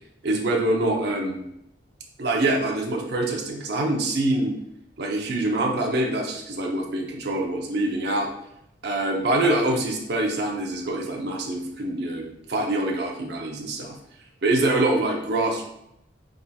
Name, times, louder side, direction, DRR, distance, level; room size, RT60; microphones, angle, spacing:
voice 1, 0.2-1.4 2.2-4.5 5.0-8.3 8.8-14.0 14.4-15.6, right 2 dB, 65° right, 1 dB, 0.7 m, -25 dB
4.0 x 3.7 x 2.3 m, 0.80 s
head